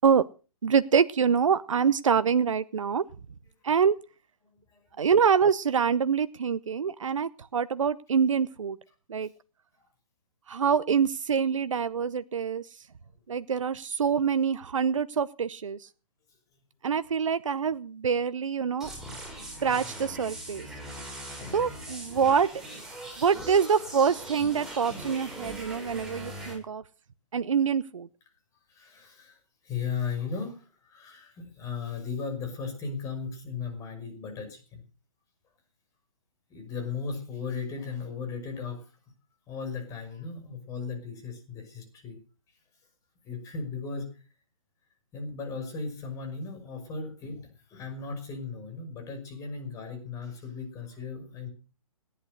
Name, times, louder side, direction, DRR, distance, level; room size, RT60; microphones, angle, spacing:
voice 1, 0.6-3.0 3.6-4.0 5.0-8.8 9.1-9.3 10.5-12.7 13.3-15.9 16.8-18.9 19.6-20.7 21.5-22.5 23.2-26.8 27.3-28.1, right 6 dB, 65° right, 15 dB, 0.8 m, -25 dB
sound 1, 18.8-26.5, right 1 dB, 5° right, 7.5 m, -41 dB
voice 2, 28.7-29.4 29.6-34.8 36.5-38.8 39.5-42.2 43.2-44.2 45.1-51.5, left 5 dB, 20° left, 6 dB, 5.8 m, -36 dB
17.5 x 11.0 x 6.5 m, 0.37 s
figure-of-eight pair, 130°, 18 cm